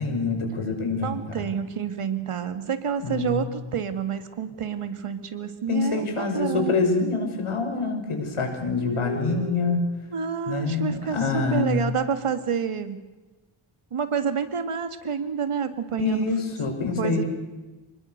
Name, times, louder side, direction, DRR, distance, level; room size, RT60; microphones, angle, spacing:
voice 1, 0.0-1.4 3.0-3.5 5.7-10.0 10.5-11.8 16.0-17.2, left 4 dB, 80° left, 3 dB, 6.5 m, -26 dB
voice 2, 1.0-6.7 8.8-9.8 10.1-13.0 13.9-16.3 17.0-17.2, right 7 dB, 90° right, 9 dB, 2.3 m, -29 dB
28.5 x 21.0 x 6.8 m, 1.2 s
cardioid pair, 60°, 50 cm